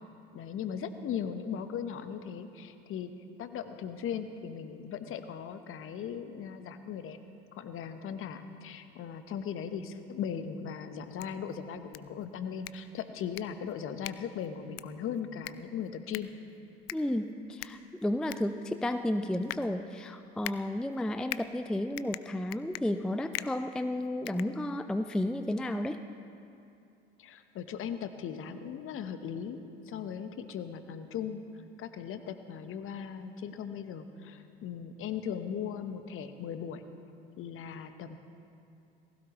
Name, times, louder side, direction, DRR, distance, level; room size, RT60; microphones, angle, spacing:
voice 1, 0.3-3.1 3.4-7.2 7.5-16.3 27.2-29.6 29.9-31.4 31.8-36.8 37.4-38.2, left 8 dB, 45° left, 9 dB, 1.0 m, -38 dB
sound 1, 11.0-25.1, left 16 dB, 70° left, 0.5 m, -45 dB
voice 2, 16.9-26.0, left 1 dB, ahead, 9 dB, 0.4 m, -32 dB
19.0 x 16.5 x 3.1 m, 2.6 s
hypercardioid pair, 70°, 30 cm